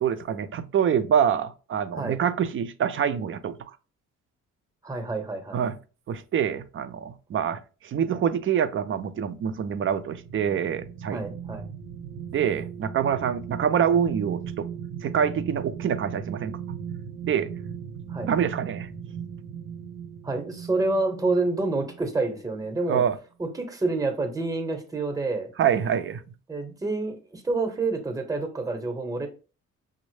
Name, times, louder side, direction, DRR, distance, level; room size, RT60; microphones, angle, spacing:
voice 1, 0.0-3.6 5.5-5.8 6.1-11.2 12.3-14.7 15.0-16.5 17.2-17.5 18.3-18.9 22.9-23.2 25.6-26.2, right 8 dB, 45° right, 0.4 m, -25 dB
voice 2, 4.8-5.6 11.1-11.6 18.1-18.3 20.2-23.0 23.4-25.5 26.5-29.3, right 3 dB, 10° right, 0.8 m, -28 dB
sound 1, 9.1-22.1 22.5-22.7, right 7 dB, 75° right, 0.8 m, -38 dB
5.2 x 2.0 x 3.1 m
cardioid pair, 90°, 30 cm